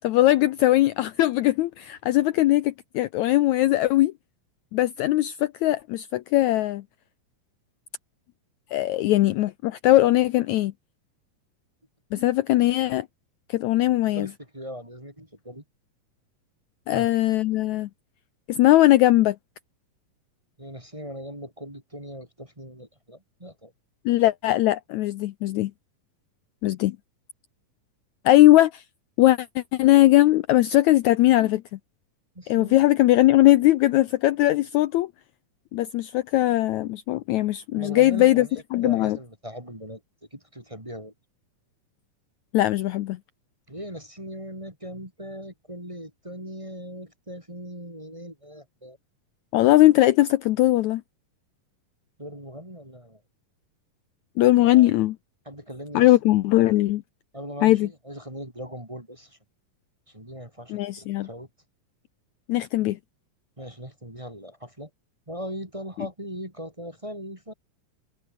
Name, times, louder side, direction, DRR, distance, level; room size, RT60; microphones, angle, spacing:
voice 1, 0.0-4.1 4.7-6.8 8.7-10.7 12.1-13.1 13.5-14.3 16.9-17.9 18.5-19.4 24.1-25.7 26.6-27.0 28.3-28.8 29.2-31.6 32.5-35.1 35.7-38.5 38.7-39.2 42.5-43.2 49.5-51.0 54.4-55.2 55.9-57.0 57.6-57.9 60.7-61.3 62.5-63.0, left 16 dB, 80° left, 1.7 m, -20 dB
voice 2, 13.9-15.6 16.9-17.1 20.6-23.7 32.3-32.8 37.7-40.0 40.3-41.1 43.7-49.0 52.2-53.2 54.4-54.9 55.4-56.1 57.3-59.4 60.1-61.5 63.6-64.9 65.3-67.5, equal, 10° right, 3.0 m, -39 dB
omnidirectional pair, 4.1 m